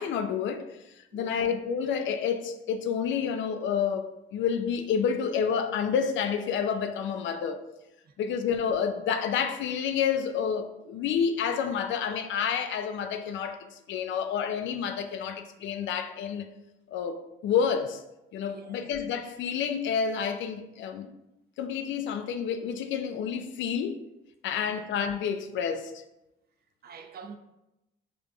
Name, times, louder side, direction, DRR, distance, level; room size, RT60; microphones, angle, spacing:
voice 1, 0.0-7.6 8.2-16.5 16.9-18.0 18.3-21.1 21.6-24.0 24.4-26.0, left 7 dB, 75° left, 0.4 m, -29 dB
voice 2, 1.1-1.5 8.1-8.4 18.5-18.9 24.5-24.8 26.8-27.4, right 5 dB, 50° right, 0.5 m, -47 dB
5.2 x 2.5 x 2.3 m
cardioid pair, 90°, 20 cm